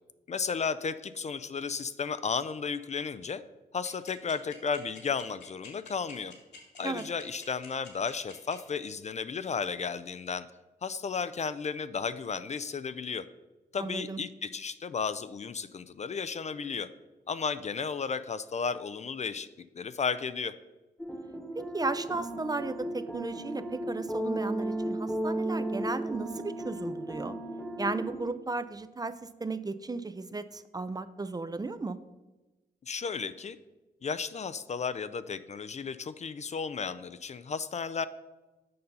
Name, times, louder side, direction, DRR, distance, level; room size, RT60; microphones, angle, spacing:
voice 1, 0.3-3.4 3.7-6.3 6.8-10.5 10.8-13.2 13.7-16.9 17.3-19.5 19.8-20.5 32.8-33.6 34.0-38.1, left 5 dB, 40° left, 14 dB, 0.4 m, -34 dB
sound 1, 3.8-8.5, left 5 dB, 80° left, 2.1 m, -48 dB
voice 2, 13.8-14.2 21.6-27.4 27.8-32.0, right 3 dB, 20° right, 13 dB, 0.4 m, -35 dB
sound 2, 21.0-28.2, right 1 dB, ahead, 1.1 m, -34 dB
6.7 x 5.5 x 5.4 m, 1.1 s
cardioid pair, 65°, 17 cm